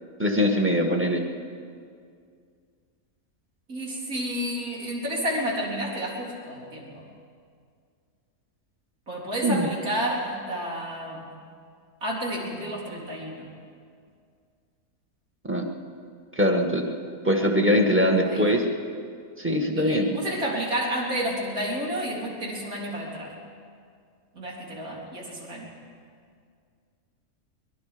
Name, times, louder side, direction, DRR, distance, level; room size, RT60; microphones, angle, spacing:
voice 1, 0.2-1.2 9.4-9.7 15.5-15.6 16.4-16.8 17.2-18.6 19.4-20.1, equal, 10° right, 1 dB, 1.8 m, -22 dB
voice 2, 3.7-7.0 9.1-11.3 12.0-13.5 18.2-18.4 19.7-23.3 24.3-25.7, equal, 75° right, -3 dB, 4.3 m, -30 dB
23.5 x 21.5 x 5.2 m, 2.2 s
omnidirectional pair, 1.5 m